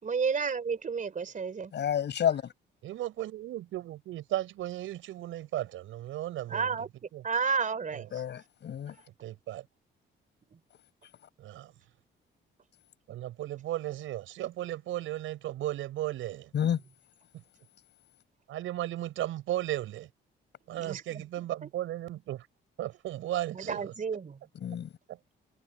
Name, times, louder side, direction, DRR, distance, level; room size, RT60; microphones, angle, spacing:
voice 1, 0.0-1.7 6.5-6.9 7.2-8.2 8.9-9.0 10.5-10.6 20.7-21.7 23.5-24.4, right 5 dB, 40° right, 4.7 m, -32 dB
voice 2, 1.7-2.4 8.1-8.9 16.5-16.8 24.6-24.9, left 9 dB, 60° left, 6.6 m, -29 dB
voice 3, 2.8-6.8 7.1-7.2 7.9-8.1 9.2-9.7 11.4-11.7 13.1-16.5 17.3-17.4 18.5-20.1 20.7-22.5 22.8-23.9 25.1-25.3, right 14 dB, 85° right, 7.1 m, -35 dB
cardioid pair, 90°, 20 cm